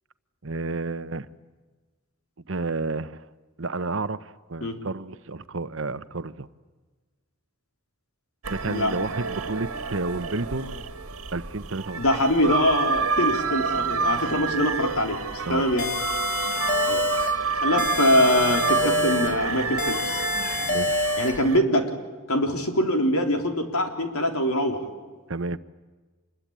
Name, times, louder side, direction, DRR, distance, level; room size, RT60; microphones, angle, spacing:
voice 1, 0.4-1.3 2.5-3.3 3.6-6.5 8.5-10.8 11.3-12.0 15.4-15.7 20.6-21.1 25.3-25.6, right 3 dB, 60° right, 13 dB, 1.0 m, -31 dB
sound 1, 8.4-21.6, right 5 dB, 80° right, 1.8 m, -28 dB
voice 2, 12.0-15.2 15.5-15.9 16.9-17.1 17.6-20.2 21.2-21.9 22.3-24.8, left 1 dB, 85° left, 4 dB, 3.8 m, -23 dB
sound 2, 15.8-17.4 17.8-19.4 19.8-21.4, left 2 dB, 40° left, 1.9 m, -27 dB
26.5 x 22.0 x 8.9 m, 1.3 s
head